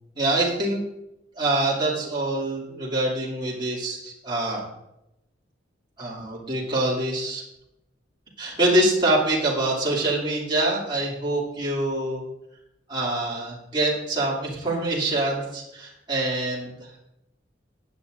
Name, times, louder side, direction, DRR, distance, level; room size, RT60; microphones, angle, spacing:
voice 1, 0.1-0.8 1.4-4.7 6.0-7.4 8.4-12.2 12.9-16.7, right 1 dB, 25° right, -6 dB, 2.7 m, -25 dB
15.0 x 9.6 x 2.6 m, 0.86 s
head